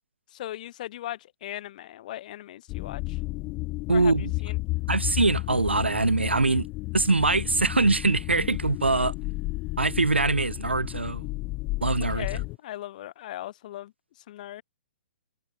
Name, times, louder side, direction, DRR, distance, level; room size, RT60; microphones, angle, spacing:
voice 1, 0.3-3.2 3.9-4.6 12.1-13.9 14.3-14.6, left 14 dB, 45° left, 3.6 m, -38 dB
sound 1, 2.7-12.6, left 22 dB, 30° left, 1.3 m, -32 dB
voice 2, 3.9-4.3 4.9-6.7 6.9-9.1 9.8-11.2 11.8-12.3, right 3 dB, 85° right, 0.7 m, -23 dB
figure-of-eight pair, 120°, 6 cm